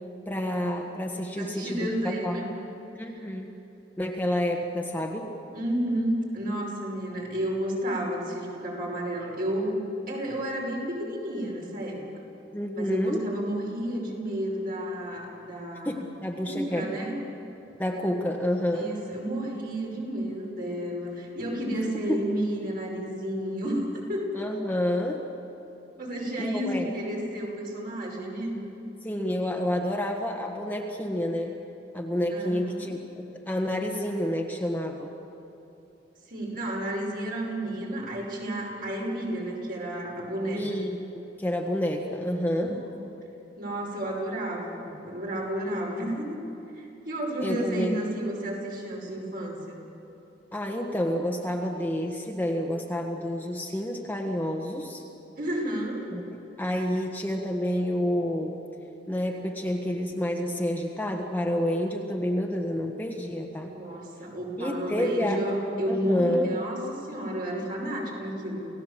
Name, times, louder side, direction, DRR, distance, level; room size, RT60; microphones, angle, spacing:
voice 1, 0.2-1.9 2.2-2.4 2.9-3.6 4.0-5.3 12.5-13.2 15.8-16.9 17.8-18.9 22.1-22.2 24.3-25.2 26.4-26.9 29.0-31.6 31.9-35.1 40.5-42.8 47.4-48.0 50.5-55.0 56.1-58.6 59.1-63.7 64.6-65.4 65.9-66.6, equal, 10° left, 1 dB, 1.4 m, -29 dB
voice 2, 1.4-2.5 3.0-3.3 5.5-9.8 10.1-12.0 12.7-16.1 16.5-17.2 18.7-24.4 25.9-28.6 32.3-32.9 36.3-40.6 42.6-42.7 43.6-46.4 46.7-49.8 55.4-56.1 63.7-68.7, right 1 dB, 55° right, -2 dB, 5.8 m, -31 dB
29.0 x 17.0 x 7.4 m, 2.9 s
head